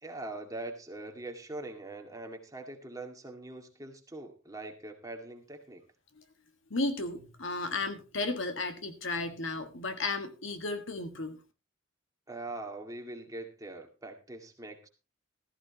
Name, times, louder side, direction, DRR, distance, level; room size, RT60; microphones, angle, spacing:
voice 1, 0.0-5.8 12.3-14.9, right 2 dB, 15° right, 3 dB, 2.0 m, -42 dB
voice 2, 6.7-11.4, left 2 dB, 65° left, 8 dB, 1.6 m, -34 dB
15.0 x 14.5 x 2.9 m, 0.29 s
head